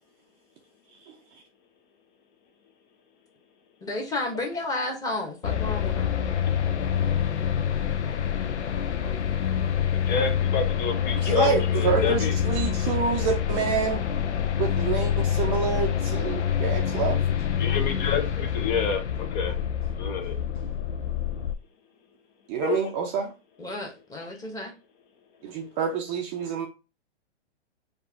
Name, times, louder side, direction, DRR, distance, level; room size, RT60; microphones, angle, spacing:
voice 1, 3.8-6.1 23.6-24.7, left 2 dB, 10° left, 1.1 m, -32 dB
sound 1, 5.4-21.5, left 9 dB, 85° left, 0.6 m, -26 dB
voice 2, 10.1-12.3 17.6-19.0 19.3-19.6 20.0-20.3 22.6-22.8, left 6 dB, 45° left, 0.9 m, -28 dB
voice 3, 11.2-14.1 14.6-17.2 22.5-23.3 25.4-26.7, right 6 dB, 25° right, 0.5 m, -27 dB
4.6 x 2.6 x 3.4 m
hypercardioid pair, 130°, 34 cm